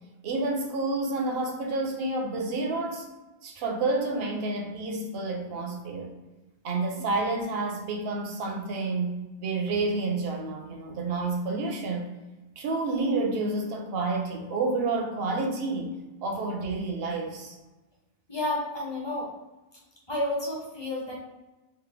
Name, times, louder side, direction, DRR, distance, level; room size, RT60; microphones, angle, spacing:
voice 1, 0.2-3.1 3.4-6.1 6.6-12.1 12.6-17.6, right 3 dB, 70° right, 2 dB, 0.8 m, -29 dB
voice 2, 18.3-19.3 20.1-21.2, left 1 dB, 30° left, -3 dB, 0.6 m, -30 dB
3.3 x 2.0 x 3.2 m, 1.1 s
omnidirectional pair, 1.1 m